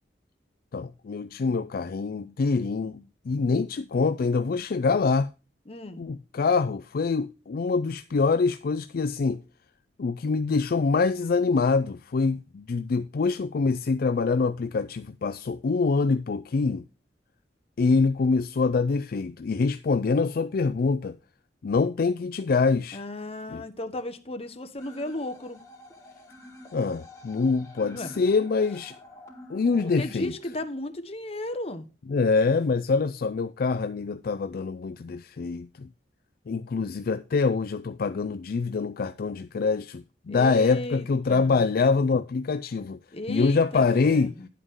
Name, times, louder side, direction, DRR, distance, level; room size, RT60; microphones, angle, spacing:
voice 1, 0.7-5.3 6.0-9.4 10.0-16.8 17.8-21.2 21.6-23.0 23.5-23.6 26.7-28.9 29.5-30.3 32.1-35.9 36.5-43.0 43.3-44.3, left 4 dB, 55° left, 0.4 m, -25 dB
voice 2, 5.7-6.0 22.9-25.6 27.9-28.2 29.8-31.8 40.3-41.7 43.1-44.5, left 1 dB, 35° left, 1.2 m, -35 dB
sound 1, 24.8-30.8, left 1 dB, 15° left, 2.9 m, -48 dB
11.5 x 8.3 x 3.7 m
head